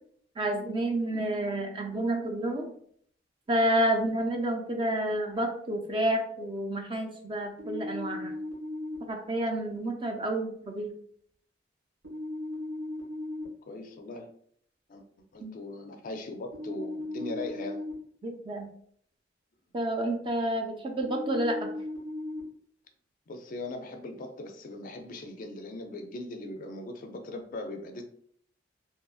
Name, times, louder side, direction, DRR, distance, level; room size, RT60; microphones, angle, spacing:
voice 1, 0.4-2.7 3.5-8.3 9.1-10.9 15.4-15.5 18.2-18.7 19.7-21.7, right 1 dB, 25° right, 3 dB, 0.4 m, -29 dB
sound 1, 7.6-9.0 12.0-13.4 16.5-17.9 21.0-22.4, left 1 dB, 85° right, 1.2 m, -36 dB
voice 2, 13.7-14.3 14.9-15.0 15.3-17.8 23.3-28.0, left 2 dB, 45° left, 5 dB, 0.4 m, -39 dB
2.7 x 2.5 x 2.3 m, 0.63 s
head